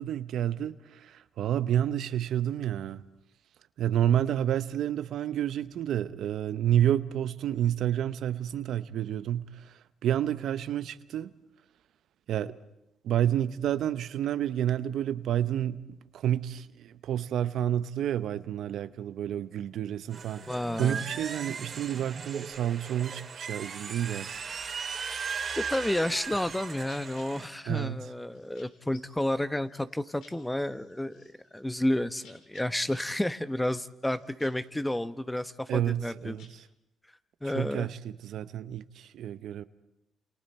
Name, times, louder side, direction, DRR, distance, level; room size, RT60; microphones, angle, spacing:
voice 1, 0.0-3.0 3.8-11.3 12.3-12.6 13.0-24.4 27.7-28.0 35.7-36.5 37.4-39.6, right 11 dB, 75° right, 0.8 m, -30 dB
sound 1, 20.1-27.5, right 6 dB, 50° right, 2.6 m, -38 dB
voice 2, 20.5-21.0 25.6-36.4 37.4-37.9, left 1 dB, 10° left, 0.9 m, -31 dB
sound 2, 24.4-36.5, left 4 dB, 80° left, 4.8 m, -61 dB
29.0 x 28.0 x 4.3 m
cardioid pair, 90°, 0 cm